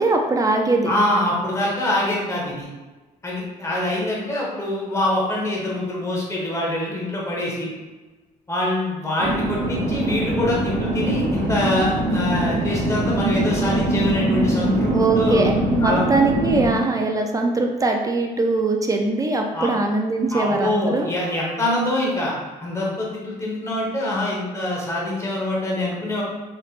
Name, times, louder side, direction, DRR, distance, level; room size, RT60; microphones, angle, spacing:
voice 1, 0.0-0.9 14.9-21.1, right 2 dB, 20° right, 3 dB, 0.4 m, -21 dB
voice 2, 0.8-2.7 3.2-7.7 8.5-15.5 15.8-16.0 19.5-19.7 20.3-22.3 22.6-26.2, left 1 dB, 15° left, -4 dB, 1.1 m, -24 dB
sound 1, 9.2-16.8, right 2 dB, 65° right, 1.1 m, -23 dB
3.2 x 3.1 x 2.4 m, 1.2 s
cardioid pair, 110°, 17 cm